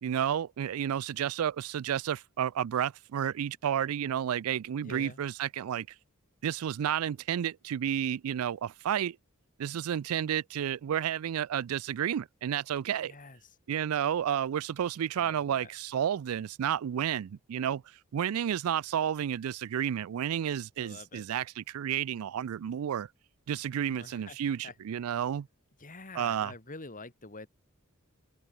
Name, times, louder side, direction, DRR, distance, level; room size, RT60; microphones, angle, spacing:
voice 1, 0.0-5.9 6.4-9.2 9.6-13.1 13.7-17.8 18.1-23.1 23.5-25.5 26.1-26.5, right 9 dB, 85° right, 0.4 m, -31 dB
voice 2, 4.8-5.2 13.0-13.5 15.1-15.7 20.8-21.2 23.9-24.4 24.6-24.7 25.8-27.5, left 3 dB, 40° left, 3.0 m, -46 dB
head